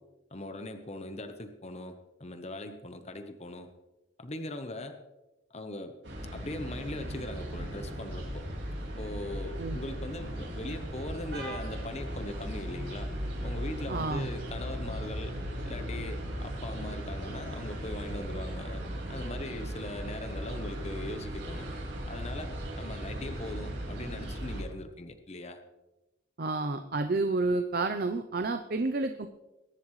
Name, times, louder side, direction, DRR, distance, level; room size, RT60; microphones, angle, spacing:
voice 1, 0.3-3.7 4.2-5.0 5.5-6.0 6.3-8.5 9.0-13.1 13.4-15.4 15.6-18.8 19.1-21.7 22.1-25.6, left 1 dB, 35° left, 7 dB, 0.9 m, -40 dB
sound 1, 6.0-24.6, equal, 70° right, 5.1 m, -37 dB
voice 2, 13.9-14.3 26.4-29.3, right 3 dB, 50° right, 8 dB, 0.6 m, -30 dB
22.0 x 11.0 x 3.2 m, 1.0 s
head